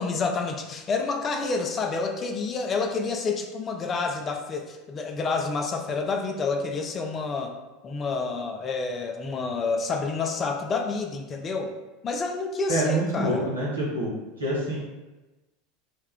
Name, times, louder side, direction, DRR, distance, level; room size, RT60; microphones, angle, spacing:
voice 1, 0.0-7.6 7.8-11.7 12.0-13.5, left 4 dB, 30° left, 4 dB, 0.4 m, -29 dB
voice 2, 12.7-14.1 14.4-14.8, right 1 dB, 85° right, -5 dB, 0.8 m, -26 dB
2.3 x 2.2 x 3.4 m, 1.1 s
figure-of-eight pair, 80°, 0 cm